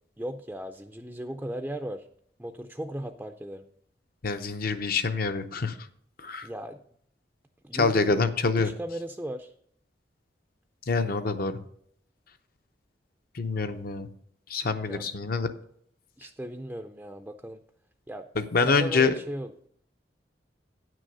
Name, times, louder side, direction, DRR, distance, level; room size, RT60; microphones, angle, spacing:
voice 1, 0.2-2.1 2.4-3.6 6.4-6.8 7.6-8.2 8.6-9.5 14.9-15.1 16.2-17.6 18.1-18.3 18.6-19.7, right 1 dB, 10° right, 6 dB, 0.4 m, -37 dB
voice 2, 4.2-5.8 6.2-6.5 7.7-8.7 10.9-11.5 13.3-14.1 14.5-15.5 18.4-19.1, left 4 dB, 55° left, 9 dB, 0.7 m, -26 dB
9.6 x 6.2 x 5.4 m, 0.66 s
head